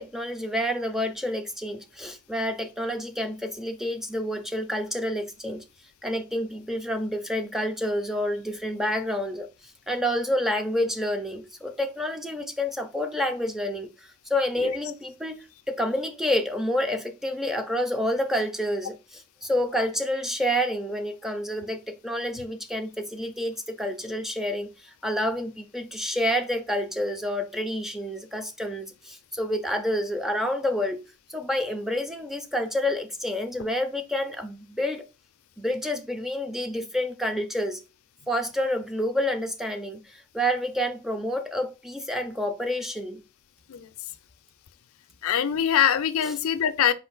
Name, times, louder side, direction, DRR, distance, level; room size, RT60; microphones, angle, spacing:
voice 1, 0.0-5.6 6.0-31.0 31.3-35.0 35.6-37.8 38.3-43.2 46.2-46.3, equal, ahead, 0.4 m, -29 dB
voice 2, 45.2-46.9, left 9 dB, 65° left, 0.4 m, -23 dB
4.3 x 2.5 x 3.9 m
head